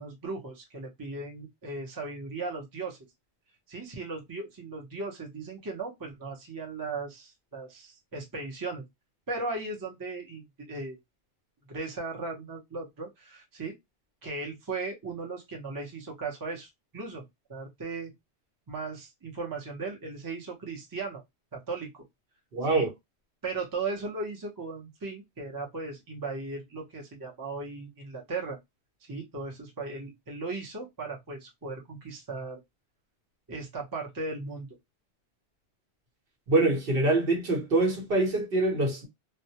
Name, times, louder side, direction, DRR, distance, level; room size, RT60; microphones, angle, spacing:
voice 1, 0.0-3.0 3.7-8.8 9.3-11.0 11.7-13.7 14.2-17.2 17.5-18.1 18.7-21.2 21.5-22.1 22.7-22.9 23.4-28.6 29.0-32.6 33.5-34.7, right 3 dB, 25° right, 0.6 m, -37 dB
voice 2, 22.5-22.9 36.5-39.1, right 2 dB, 55° right, 1.0 m, -24 dB
2.2 x 2.1 x 2.7 m
omnidirectional pair, 1.2 m